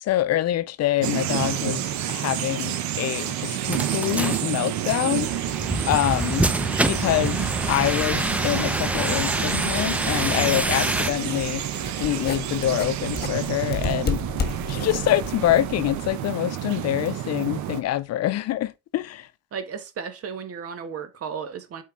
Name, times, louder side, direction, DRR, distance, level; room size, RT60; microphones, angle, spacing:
voice 1, 0.0-5.3 5.9-6.5 6.8-7.4 7.7-11.6 12.0-14.2 14.7-19.3, left 13 dB, 60° left, 0.6 m, -25 dB
sound 1, 1.0-17.8, right 11 dB, 75° right, 1.2 m, -29 dB
sound 2, 3.7-11.1, right 1 dB, 5° right, 0.7 m, -26 dB
sound 3, 6.9-16.1, left 5 dB, 35° left, 1.5 m, -35 dB
voice 2, 19.5-21.8, right 6 dB, 55° right, 1.7 m, -34 dB
8.2 x 4.6 x 4.6 m
supercardioid pair, 85°, 29 cm